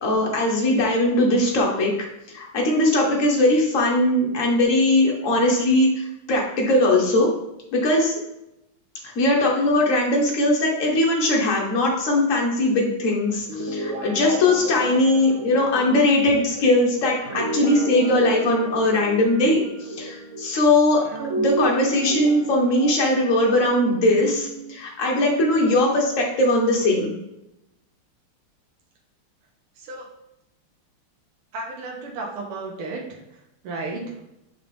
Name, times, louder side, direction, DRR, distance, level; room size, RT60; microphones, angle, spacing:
voice 1, 0.0-1.9 2.3-7.3 7.7-8.1 9.1-19.6 20.0-21.0 21.3-27.1, left 1 dB, 40° left, -1 dB, 1.5 m, -20 dB
Guitar, 13.4-20.6 21.1-24.8, right 2 dB, 65° right, 0.7 m, -32 dB
voice 2, 31.5-33.0 33.6-34.0, right 3 dB, 80° right, -2 dB, 2.0 m, -32 dB
7.2 x 4.7 x 3.4 m, 0.86 s
omnidirectional pair, 2.4 m